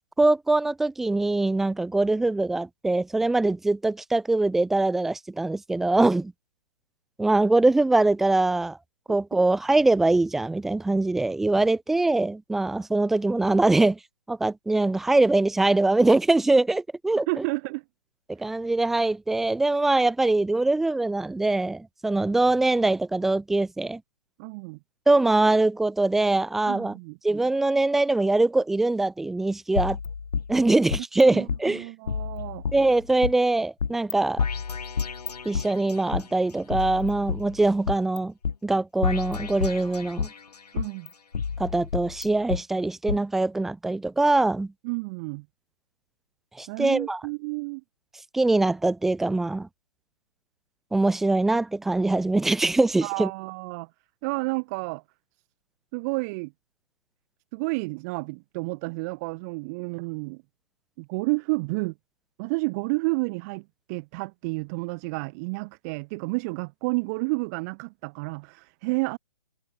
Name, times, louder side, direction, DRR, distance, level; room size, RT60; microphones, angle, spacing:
voice 1, 0.2-6.3 7.2-8.8 9.1-14.0 14.3-17.4 18.4-24.0 25.1-26.9 27.2-30.0 30.5-31.9 32.7-34.4 35.5-38.3 38.6-40.3 41.6-44.7 46.6-47.2 48.3-49.7 50.9-53.3, right 2 dB, ahead, 0.4 m, -23 dB
voice 2, 17.3-17.8 18.4-18.5 24.4-24.8 26.7-27.2 30.7-30.8 31.3-32.6 40.7-41.1 44.8-45.5 46.7-47.8 53.0-53.9 54.2-55.0 55.9-56.5 57.5-60.4 61.0-61.9 62.4-69.2, right 28 dB, 25° right, 2.1 m, -30 dB
sound 1, 29.8-31.2 31.5-31.6 32.1-33.3 33.8-34.1 34.4-36.2 36.7-38.2 38.4-38.5 39.0-40.4 40.8-42.6 43.1-43.2, left 5 dB, 75° left, 3.0 m, -30 dB
hypercardioid pair, 155°, 20 cm